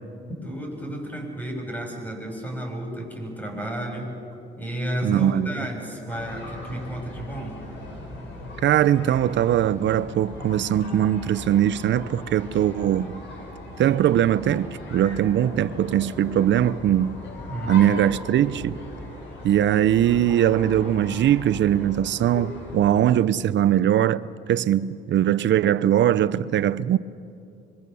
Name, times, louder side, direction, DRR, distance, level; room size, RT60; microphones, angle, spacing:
voice 1, 0.4-4.1 4.6-7.6 17.5-18.1, right 1 dB, 10° left, 7.0 m, -32 dB
voice 2, 5.0-5.6 8.6-13.2 13.8-17.2 17.7-18.8 19.4-27.0, right 11 dB, 65° right, 0.7 m, -21 dB
sound 1, 6.1-22.9, left 2 dB, 70° left, 7.2 m, -39 dB
26.0 x 23.0 x 7.0 m
cardioid pair, 90°, 20 cm